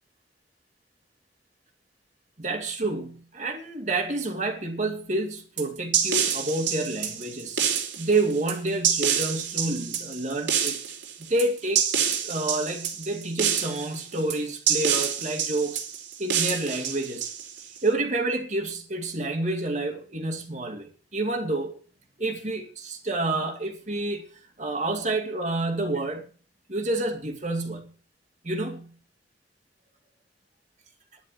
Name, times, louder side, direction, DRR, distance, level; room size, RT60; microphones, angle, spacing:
voice 1, 2.4-7.6 8.0-10.8 11.3-11.8 12.1-15.8 16.2-17.3 17.8-21.8 22.2-24.3 24.6-26.3 26.7-27.9 28.4-28.9, right 2 dB, 40° right, 2.4 m, -28 dB
sound 1, 5.6-17.8, right 8 dB, 85° right, 3.1 m, -27 dB
11.0 x 11.0 x 6.1 m
head